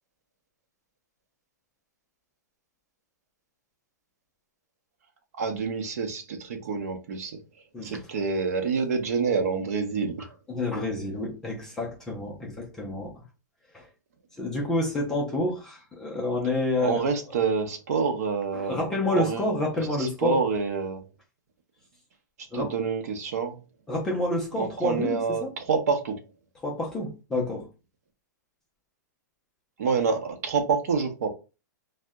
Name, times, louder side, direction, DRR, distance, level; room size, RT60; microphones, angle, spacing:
voice 1, 5.4-7.4 7.8-10.3 16.8-19.5 20.0-21.0 22.5-23.6 24.6-26.2 29.8-31.3, right 5 dB, 55° right, 0.6 m, -27 dB
voice 2, 10.5-13.1 13.7-13.8 14.4-17.0 18.5-20.4 22.5-22.7 23.9-25.5 26.6-27.7, left 2 dB, 5° left, 0.3 m, -29 dB
2.6 x 2.0 x 3.4 m
hypercardioid pair, 180°, 10 cm